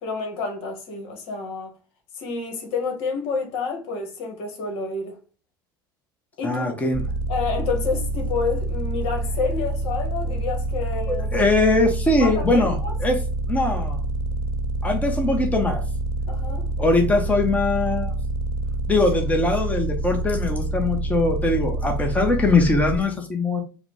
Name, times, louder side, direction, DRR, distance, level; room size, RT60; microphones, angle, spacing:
voice 1, 0.0-1.7 2.2-5.2 6.4-6.7 7.3-11.5 12.1-12.9 16.3-16.7, left 4 dB, 60° left, 1.4 m, -29 dB
voice 2, 6.4-7.0 11.1-13.2 13.5-14.0 14.8-15.8 16.8-18.1 18.9-23.6, left 2 dB, 15° left, 1.0 m, -21 dB
sound 1, 6.9-23.0, right 2 dB, 55° right, 0.8 m, -27 dB
4.7 x 2.3 x 3.3 m
hypercardioid pair, 75°, 12 cm